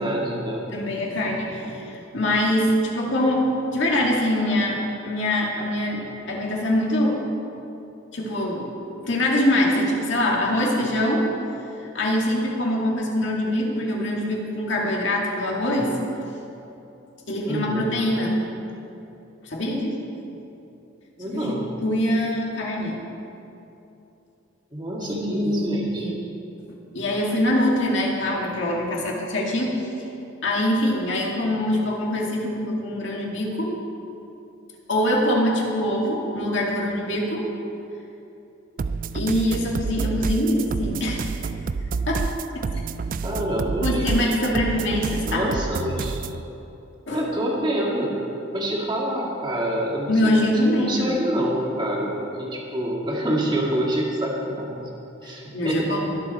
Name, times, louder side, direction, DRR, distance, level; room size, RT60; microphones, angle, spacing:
voice 1, 0.0-0.6 17.5-17.9 21.2-21.7 24.7-26.1 43.2-44.3 45.2-46.2 47.1-48.1 48.5-50.5 50.8-54.9 55.2-56.0, right 1 dB, 20° right, -3 dB, 1.9 m, -27 dB
voice 2, 0.7-3.5 3.7-6.0 6.3-7.2 8.1-8.7 9.0-11.2 11.9-15.9 17.3-18.3 19.4-20.0 21.3-21.6 21.8-23.0 25.0-26.1 26.9-29.9 30.4-33.8 34.9-37.5 39.1-41.3 42.1-42.2 43.8-45.5 47.1-47.3 50.1-51.1 55.5-56.2, left 1 dB, 60° left, -2 dB, 2.1 m, -23 dB
sound 1, 38.8-46.4, right 4 dB, 40° right, 0.3 m, -28 dB
21.5 x 7.3 x 4.3 m, 2.9 s
head